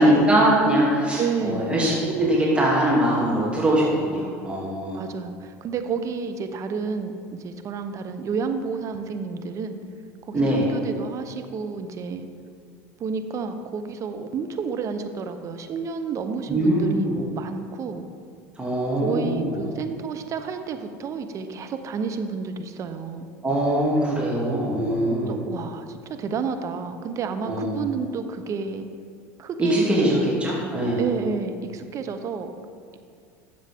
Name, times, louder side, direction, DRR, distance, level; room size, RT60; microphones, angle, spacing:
voice 1, 0.0-5.1 10.3-10.7 16.5-17.1 18.6-19.6 23.4-25.3 27.4-27.9 29.6-31.0, right 1 dB, 15° right, -6 dB, 2.6 m, -22 dB
voice 2, 1.2-1.8 4.9-9.8 10.2-12.3 13.0-18.0 19.0-23.3 25.3-28.9 29.4-30.3 31.0-32.5, right 5 dB, 45° right, 8 dB, 0.9 m, -30 dB
13.0 x 7.2 x 3.6 m, 2.2 s
hypercardioid pair, 85°, 8 cm